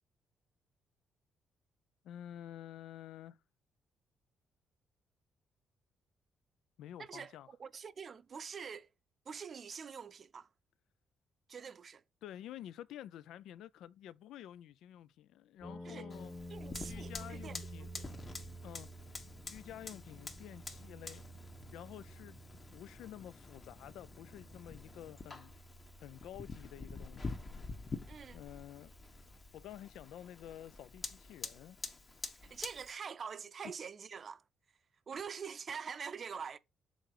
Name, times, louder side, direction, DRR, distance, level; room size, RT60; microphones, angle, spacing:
voice 1, 2.0-3.4 6.8-7.5 12.2-16.3 16.8-17.9 18.6-18.9 19.5-21.3 21.7-22.4 22.7-25.5 26.0-27.4 28.3-28.9 29.5-31.8, left 11 dB, 85° left, 0.3 m, -50 dB
voice 2, 7.0-8.9 9.3-10.5 11.5-12.0 15.8-16.1 16.5-18.1 28.1-28.4 32.4-34.4 35.1-36.6, right 6 dB, 45° right, 0.5 m, -45 dB
sound 1, 15.6-29.6, right 1 dB, 10° left, 0.9 m, -52 dB
Fire, 16.1-32.9, left 3 dB, 35° left, 1.1 m, -48 dB
6.4 x 3.8 x 4.7 m
cardioid pair, 90°, 0 cm